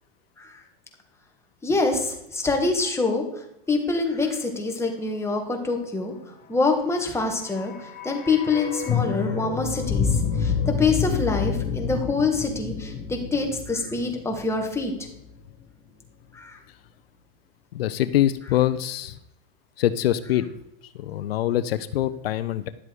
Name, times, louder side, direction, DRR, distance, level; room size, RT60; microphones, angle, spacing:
voice 1, 1.6-3.2 3.7-6.1 6.5-7.7 8.0-14.9 16.3-16.6, left 3 dB, 10° left, 2 dB, 2.2 m, -25 dB
sound 1, 7.3-15.3 15.6-15.7, left 6 dB, 30° left, 1.7 m, -28 dB
voice 2, 17.7-19.2 19.8-20.5 21.0-22.7, left 12 dB, 85° left, 14 dB, 0.7 m, -24 dB
11.0 x 7.6 x 4.9 m, 0.80 s
supercardioid pair, 125°, 29 cm